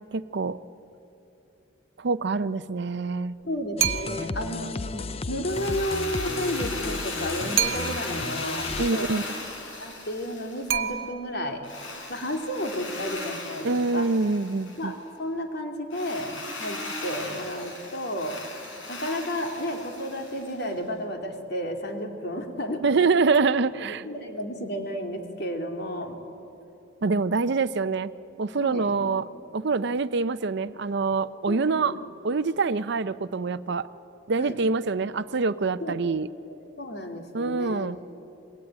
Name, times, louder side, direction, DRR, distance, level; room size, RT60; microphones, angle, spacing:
voice 1, 0.1-0.6 2.0-3.4 8.8-9.2 13.6-14.9 22.8-24.0 27.0-28.1 28.4-29.3 29.5-32.0 32.2-33.9 34.3-36.3 37.3-38.0, right 4 dB, 60° right, 12 dB, 0.6 m, -25 dB
voice 2, 3.4-9.3 9.8-11.6 12.1-14.1 14.8-18.4 18.9-22.8 23.8-26.2 28.6-29.1 31.5-32.0 34.4-34.6 35.8-36.2 36.4-37.9, equal, 55° left, 3 dB, 2.9 m, -32 dB
sound 1, 3.8-8.9, left 3 dB, 30° left, 0.5 m, -34 dB
sound 2, 3.8-4.4 7.6-8.3 10.7-11.5, right 8 dB, 85° right, 1.1 m, -28 dB
Drill, 5.4-11.0 11.6-14.9 15.9-20.7, left 2 dB, 80° left, 5.2 m, -37 dB
26.0 x 21.5 x 9.2 m, 2.9 s
head